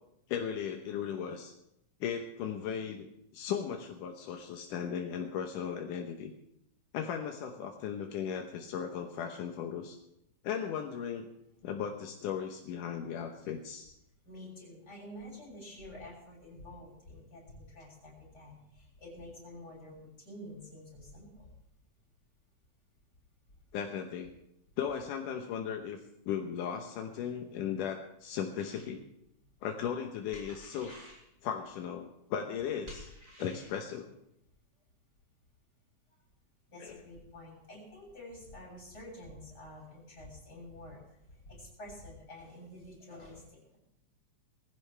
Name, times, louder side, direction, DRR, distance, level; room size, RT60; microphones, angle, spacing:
voice 1, 0.3-1.5 2.0-3.1 3.3-6.3 6.9-10.0 10.4-11.3 11.6-13.9 23.7-24.3 24.8-26.0 26.3-29.1 29.6-31.0 31.4-33.1 33.4-34.1 36.8-37.0, left 8 dB, 80° left, 3 dB, 2.6 m, -36 dB
voice 2, 14.3-21.5 36.7-43.8, left 1 dB, 30° left, -3 dB, 7.1 m, -49 dB
sound 1, 28.6-28.9 30.3-31.3 32.9-33.8, equal, 25° right, 5.7 m, -50 dB
21.0 x 15.5 x 3.4 m, 0.79 s
omnidirectional pair, 3.6 m